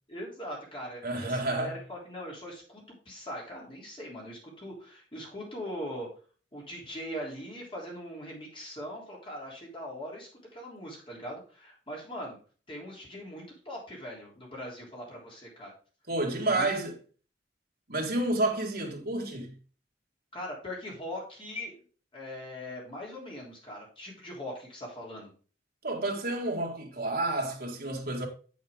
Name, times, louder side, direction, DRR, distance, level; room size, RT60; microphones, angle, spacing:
voice 1, 0.1-6.1 6.5-12.4 12.7-15.7 16.5-16.7 20.3-21.8 22.1-25.3, equal, 30° left, 3.4 m, -41 dB
voice 2, 1.0-1.8 16.1-16.9 17.9-19.6 25.8-28.3, right 2 dB, 55° right, 2.1 m, -30 dB
7.5 x 7.1 x 3.6 m
head